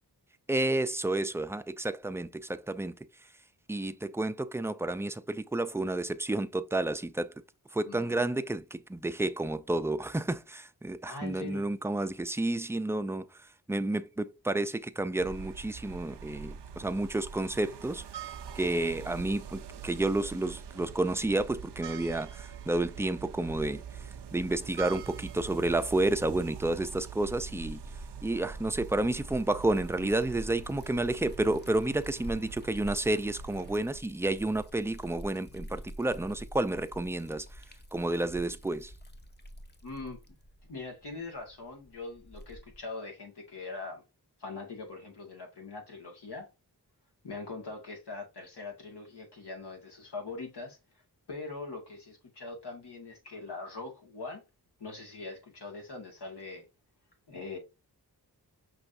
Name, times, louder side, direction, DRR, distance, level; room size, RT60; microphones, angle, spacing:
voice 1, 0.5-2.9 3.7-7.3 7.7-18.0 18.6-23.8 24.3-27.8 28.2-37.6 37.9-38.9, right 2 dB, 5° right, 0.4 m, -30 dB
voice 2, 7.8-8.2 11.0-11.7 39.8-40.2 40.7-44.0 44.4-46.5 47.2-50.8 51.3-54.4 54.8-56.7 57.3-57.6, left 3 dB, 75° left, 1.9 m, -42 dB
sound 1, 15.2-34.0, right 7 dB, 80° right, 0.5 m, -44 dB
Liquid, 27.2-42.9, equal, 25° left, 0.8 m, -48 dB
5.8 x 3.1 x 2.6 m
cardioid pair, 50°, 40 cm